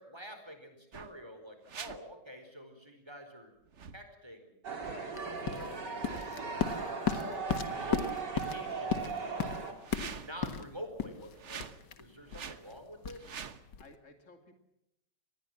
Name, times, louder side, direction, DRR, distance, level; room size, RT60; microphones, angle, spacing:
voice 1, 0.0-3.5 3.9-5.1 5.4-5.8 7.6-9.3 9.9-11.6 12.0-13.3, equal, 15° right, 7 dB, 4.6 m, -48 dB
sound 1, 0.9-1.2 1.6-2.0 3.7-4.0 4.8-5.0 5.9-6.3 7.5-8.3 9.7-10.4 11.3-11.8 12.3-12.6 13.1-13.6, right 6 dB, 45° right, 1.3 m, -46 dB
sound 2, 4.6-9.7, right 5 dB, 85° right, 3.8 m, -38 dB
sound 3, 5.1-13.9, left 7 dB, 90° left, 2.2 m, -36 dB
voice 2, 13.8-14.6, left 4 dB, 45° left, 6 dB, 3.0 m, -53 dB
26.5 x 20.5 x 7.5 m, 0.82 s
omnidirectional pair, 1.8 m